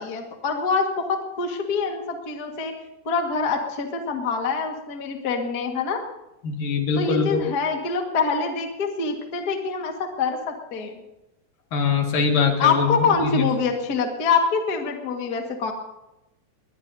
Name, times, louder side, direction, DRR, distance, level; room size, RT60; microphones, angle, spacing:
voice 1, 0.0-2.7 3.0-6.0 7.0-11.0 12.6-15.7, left 5 dB, 40° left, 2 dB, 1.6 m, -25 dB
voice 2, 6.4-7.4 11.7-13.5, left 5 dB, 75° left, 2 dB, 3.6 m, -23 dB
20.5 x 20.5 x 2.8 m, 0.94 s
omnidirectional pair, 4.0 m